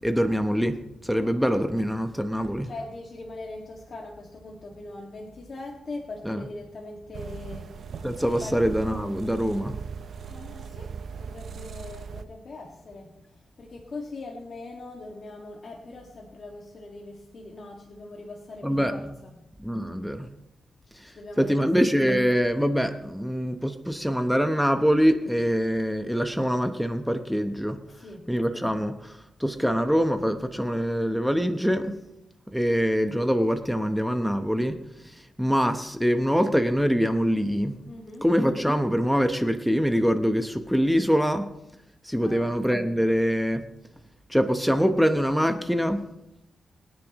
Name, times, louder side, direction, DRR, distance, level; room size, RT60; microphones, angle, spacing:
voice 1, 0.0-2.7 6.2-6.4 8.0-9.8 18.6-18.9 19.6-20.3 20.9-27.8 28.3-32.0 32.5-37.8 38.2-41.5 42.0-43.6 44.3-46.1, equal, ahead, 7 dB, 0.9 m, -24 dB
voice 2, 2.6-8.6 10.2-19.4 21.0-21.7 27.9-28.3 37.9-38.3 42.2-42.5, left 2 dB, 50° left, -2 dB, 1.9 m, -41 dB
sound 1, 7.1-12.2, right 6 dB, 65° right, 0.7 m, -38 dB
22.5 x 9.8 x 3.0 m, 0.85 s
cardioid pair, 100°, 0 cm